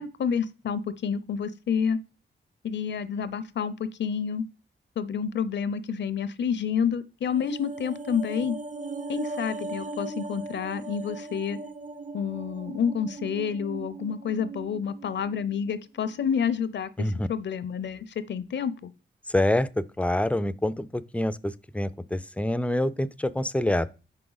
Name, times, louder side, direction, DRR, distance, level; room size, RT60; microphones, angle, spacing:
voice 1, 0.0-2.0 2.6-4.4 5.0-8.5 9.1-11.6 12.1-18.9, left 7 dB, 65° left, 0.5 m, -29 dB
sound 1, 7.2-15.7 16.0-16.1, right 3 dB, 40° right, 0.6 m, -39 dB
voice 2, 19.3-23.9, left 1 dB, 5° left, 0.3 m, -26 dB
5.4 x 4.9 x 3.9 m
cardioid pair, 85°, 19 cm